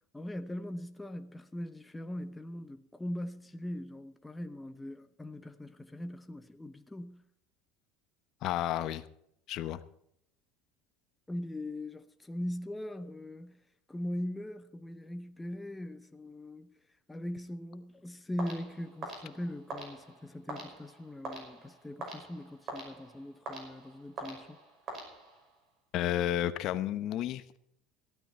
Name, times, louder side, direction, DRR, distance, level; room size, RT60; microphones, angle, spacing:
voice 1, 0.1-7.2 11.3-13.6 13.9-16.7 17.1-24.6, left 1 dB, 5° left, 0.8 m, -40 dB
voice 2, 8.4-9.0 9.5-9.8 25.9-27.6, left 12 dB, 50° left, 0.9 m, -31 dB
sound 1, 18.4-25.6, right 2 dB, 35° right, 5.4 m, -45 dB
15.5 x 13.0 x 4.2 m
cardioid pair, 145°, 0 cm